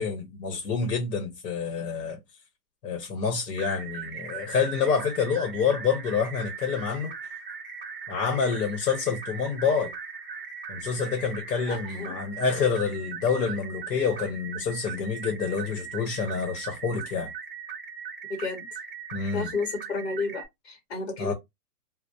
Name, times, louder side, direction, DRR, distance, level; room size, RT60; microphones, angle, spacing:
voice 1, 0.0-2.2 2.8-7.1 8.1-9.9 10.7-17.3 19.1-19.5 21.2-21.3, left 6 dB, 80° left, 1.0 m, -27 dB
sound 1, 3.5-20.4, right 6 dB, 35° right, 0.5 m, -39 dB
voice 2, 11.7-12.2 18.3-18.8 19.3-21.3, left 4 dB, 40° left, 1.0 m, -32 dB
2.2 x 2.2 x 2.6 m
hypercardioid pair, 175°, 49 cm